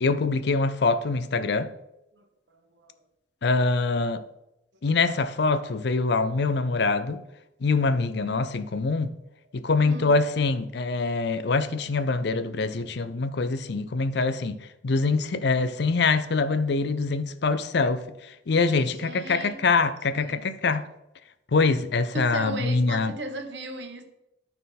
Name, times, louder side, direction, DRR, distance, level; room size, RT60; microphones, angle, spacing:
voice 1, 0.0-1.7 3.4-4.2 4.8-7.2 7.6-9.1 9.5-14.6 14.8-18.0 18.5-20.8 21.5-23.1, left 4 dB, 65° left, 0.5 m, -24 dB
voice 2, 2.5-3.0 9.8-10.2 18.8-19.6 20.1-20.5 22.1-24.0, right 2 dB, 70° right, 1.2 m, -36 dB
12.5 x 4.4 x 4.2 m
head